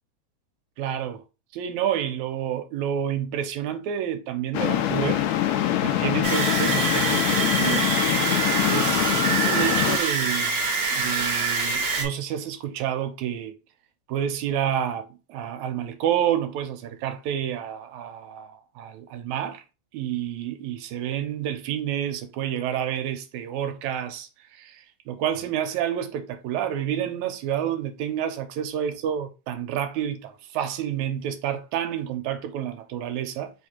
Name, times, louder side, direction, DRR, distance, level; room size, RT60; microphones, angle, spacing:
voice 1, 0.8-1.2 1.5-8.0 8.7-13.5 14.1-19.6 19.9-33.5, right 10 dB, 85° right, 1.9 m, -29 dB
sound 1, 4.5-10.0, left 12 dB, 80° left, 1.6 m, -24 dB
sound 2, 6.2-12.0, right 4 dB, 50° right, 1.5 m, -25 dB
4.8 x 2.6 x 4.3 m
omnidirectional pair, 3.4 m